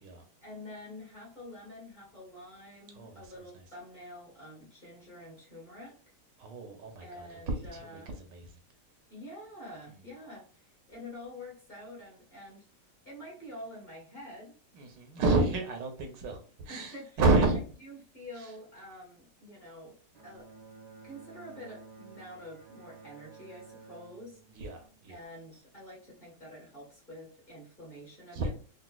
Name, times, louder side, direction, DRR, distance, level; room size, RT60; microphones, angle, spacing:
voice 1, 0.4-6.1 7.0-8.1 9.1-12.7 13.0-14.5 15.1-15.4 16.7-17.2 17.8-20.0 20.2-20.5 21.0-24.4 25.1-28.5, left 1 dB, 25° left, -5 dB, 1.4 m, -47 dB
voice 2, 6.4-7.6 7.9-8.5 14.7-16.4 16.6-17.6 24.5-25.2 28.3-28.5, right 3 dB, 75° right, 4 dB, 1.4 m, -29 dB
Bowed string instrument, 20.1-25.6, right 4 dB, 55° right, 0.4 m, -53 dB
4.0 x 2.4 x 2.3 m, 0.42 s
omnidirectional pair, 2.0 m